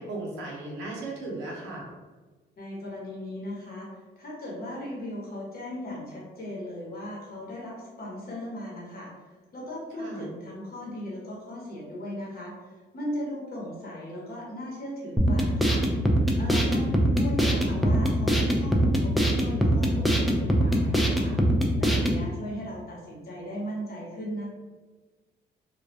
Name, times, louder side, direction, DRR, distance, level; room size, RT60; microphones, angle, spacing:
voice 1, 0.0-1.9 10.0-10.3, right 2 dB, 85° right, -2 dB, 0.6 m, -36 dB
voice 2, 2.6-3.9 4.2-9.1 9.5-12.5 12.9-15.8 16.4-21.4 21.8-24.5, equal, 50° left, -3 dB, 0.9 m, -37 dB
sound 1, 15.2-22.2, equal, ahead, 0.3 m, -23 dB
2.2 x 2.2 x 2.6 m, 1.3 s
cardioid pair, 90°, 20 cm